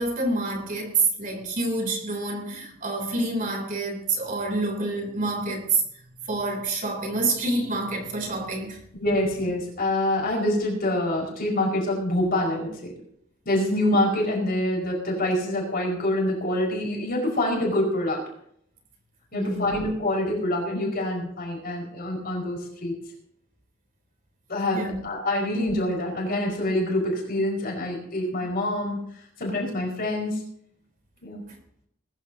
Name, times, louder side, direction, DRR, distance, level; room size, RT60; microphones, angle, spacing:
voice 1, 0.0-5.8 6.2-8.8 19.3-19.7 24.7-25.0 31.5-31.6, right 3 dB, 40° right, 3.4 m, -27 dB
voice 2, 9.0-12.9 13.4-18.2 19.3-22.9 24.5-29.0 29.4-30.4 31.2-31.4, left 1 dB, 50° left, 5.0 m, -26 dB
20.5 x 14.5 x 2.8 m
head